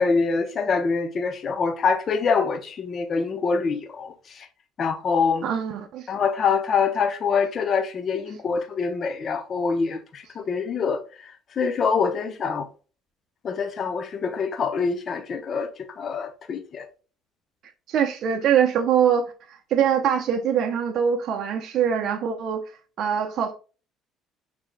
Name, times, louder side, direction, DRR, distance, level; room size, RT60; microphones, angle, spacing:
voice 1, 0.0-4.5 4.8-5.5 6.1-12.7 13.4-16.9, left 5 dB, 45° left, 0.8 m, -25 dB
voice 2, 5.4-6.1 17.9-22.6 23.0-23.5, right 8 dB, 60° right, 0.7 m, -23 dB
6.6 x 3.5 x 2.2 m
cardioid pair, 105°, 0 cm